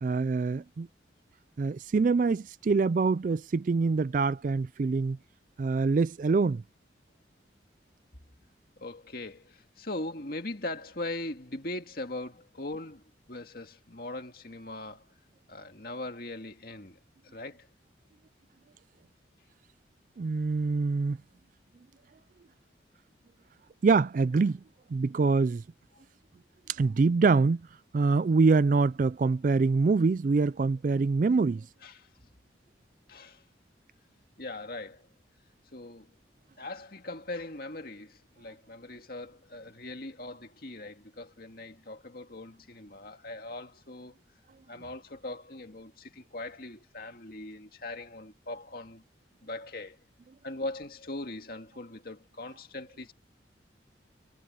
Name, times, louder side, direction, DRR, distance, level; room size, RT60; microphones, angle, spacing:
voice 1, 0.0-0.9 1.6-5.2 5.6-6.6 20.2-21.2 23.8-24.6 24.9-25.6 26.7-27.6 27.9-31.7, right 4 dB, 45° right, 0.3 m, -25 dB
voice 2, 8.8-15.1 15.5-17.0 17.2-17.7 31.8-32.1 33.1-33.4 34.4-35.1 35.7-36.1 36.6-44.1 44.7-49.0 49.4-50.0 50.4-53.1, left 2 dB, 50° left, 2.1 m, -40 dB
head